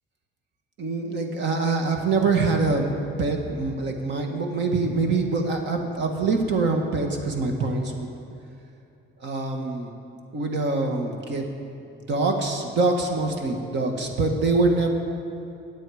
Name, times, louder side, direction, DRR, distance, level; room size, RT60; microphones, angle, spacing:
voice 1, 0.8-8.1 9.2-9.9 10.3-11.5 12.1-14.9, right 3 dB, 60° right, 3 dB, 1.7 m, -24 dB
22.5 x 8.5 x 5.0 m, 2.8 s
cardioid pair, 145°, 21 cm